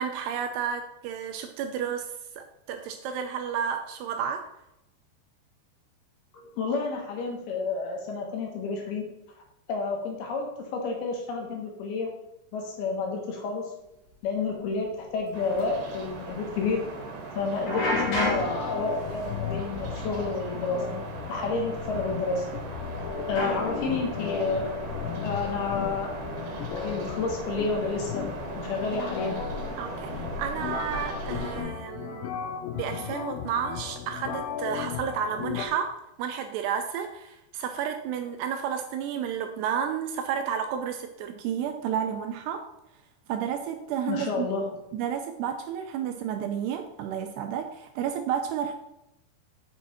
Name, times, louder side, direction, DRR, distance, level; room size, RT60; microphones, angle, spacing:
voice 1, 0.0-4.4 29.8-32.3 32.7-35.9 36.2-42.7 43.3-44.5 44.9-48.7, right 8 dB, 85° right, 6 dB, 2.5 m, -31 dB
voice 2, 6.3-9.1 9.7-12.1 12.5-13.7 14.2-16.9 17.3-20.9 21.3-22.5 23.3-24.8 25.2-26.1 26.8-28.3 28.6-29.4 44.1-44.7, left 4 dB, 70° left, 1 dB, 2.9 m, -30 dB
sound 1, 14.1-14.2 14.7-14.9 15.1-15.2 15.6-15.7 17.5-20.5 20.8-21.1 22.0-22.1 23.4-25.7, left 1 dB, 50° left, 2.1 m, -33 dB
sound 2, 15.3-31.6, right 3 dB, 65° right, 2.9 m, -38 dB
sound 3, 17.8-35.7, left 7 dB, 85° left, 3.0 m, -36 dB
7.4 x 6.4 x 4.2 m, 0.86 s
omnidirectional pair, 5.1 m